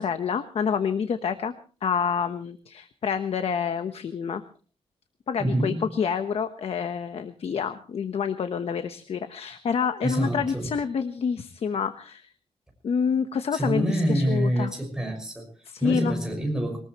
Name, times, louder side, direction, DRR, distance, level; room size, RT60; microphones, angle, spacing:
voice 1, 0.0-1.5 1.8-4.4 5.3-12.3 12.8-14.7 15.7-16.1, left 6 dB, 60° left, 9 dB, 1.1 m, -28 dB
voice 2, 5.4-5.9 10.0-10.7 13.5-16.8, right 1 dB, 5° right, 2 dB, 6.1 m, -26 dB
23.0 x 20.0 x 3.1 m, 0.38 s
wide cardioid pair, 170°, 11 cm